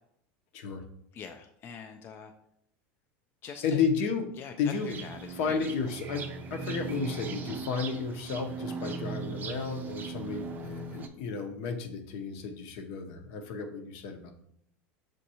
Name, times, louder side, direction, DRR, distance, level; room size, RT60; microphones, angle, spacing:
voice 1, 1.1-2.3 3.4-3.8 4.4-5.7, left 6 dB, 35° left, 5 dB, 0.4 m, -44 dB
voice 2, 3.6-4.3 4.6-5.0 5.4-14.3, left 5 dB, 70° left, 4 dB, 0.7 m, -32 dB
sound 1, 4.7-11.1, right 4 dB, 25° right, 0.5 m, -38 dB
6.3 x 2.6 x 2.8 m, 0.72 s
supercardioid pair, 125°, 7 cm